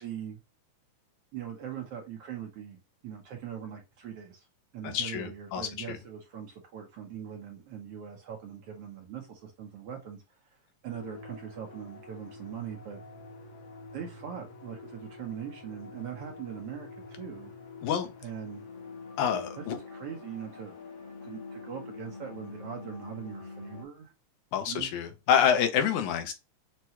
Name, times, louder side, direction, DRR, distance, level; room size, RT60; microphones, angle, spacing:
voice 1, 0.0-0.4 1.3-4.5 4.7-10.6 10.8-13.0 13.9-17.5 18.2-18.6 19.6-19.7 19.9-20.7 21.2-24.1 24.7-24.9, right 8 dB, 65° right, 1.6 m, -41 dB
voice 2, 4.8-6.0 17.8-18.1 19.2-19.8 24.5-26.3, left 8 dB, 80° left, 2.2 m, -27 dB
sound 1, 10.9-23.8, left 3 dB, 60° left, 1.3 m, -46 dB
6.5 x 2.2 x 2.8 m
omnidirectional pair, 3.4 m